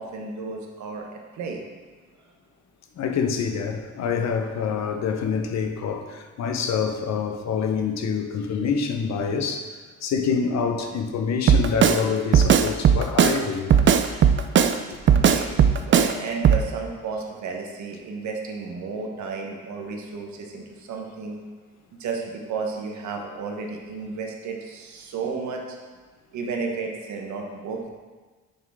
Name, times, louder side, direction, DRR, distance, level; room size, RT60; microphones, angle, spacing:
voice 1, 0.0-1.6 15.1-21.4 22.0-25.6 26.3-27.9, right 4 dB, 70° right, 1 dB, 1.0 m, -33 dB
voice 2, 3.0-13.8 14.3-14.4, left 6 dB, 60° left, 6 dB, 0.7 m, -26 dB
Drum kit, 11.5-12.0 12.3-13.4 13.7-14.8 15.1-16.1 16.4-16.6, right 8 dB, 40° right, 0.4 m, -16 dB
6.5 x 3.7 x 4.7 m, 1.4 s
cardioid pair, 90°, 30 cm